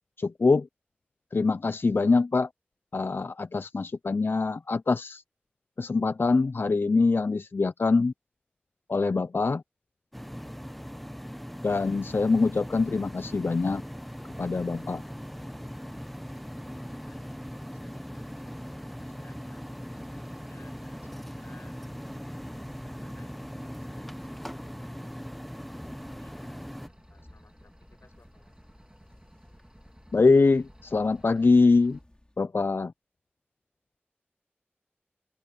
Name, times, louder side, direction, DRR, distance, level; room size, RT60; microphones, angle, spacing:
voice 1, 0.2-0.7 1.3-2.5 2.9-5.2 5.8-8.1 8.9-9.6 11.6-13.8 14.4-15.0 30.1-32.0 32.4-32.9, left 3 dB, 60° left, 0.4 m, -24 dB
sound 1, 10.1-26.9, equal, 5° left, 0.9 m, -40 dB
sound 2, 12.4-32.0, right 1 dB, 20° right, 1.8 m, -57 dB
voice 2, 17.0-21.8 22.1-26.6 27.1-28.5, left 3 dB, 80° left, 7.2 m, -61 dB
sound 3, 25.7-32.4, left 1 dB, 25° left, 3.4 m, -56 dB
open air
wide cardioid pair, 40°, 4 cm